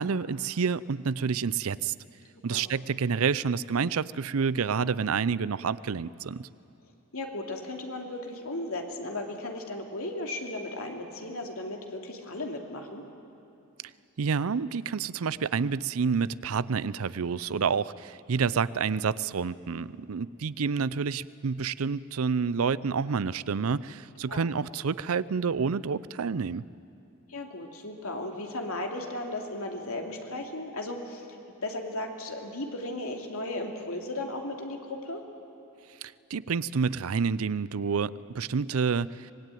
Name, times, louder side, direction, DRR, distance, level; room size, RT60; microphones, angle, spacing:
voice 1, 0.0-1.9 2.4-6.5 14.2-26.6 36.3-39.3, right 5 dB, 80° right, 18 dB, 0.5 m, -28 dB
voice 2, 7.1-13.0 24.3-24.4 27.3-31.3 31.6-35.2, left 2 dB, 80° left, 2 dB, 2.8 m, -35 dB
25.0 x 20.5 x 9.2 m, 2.7 s
head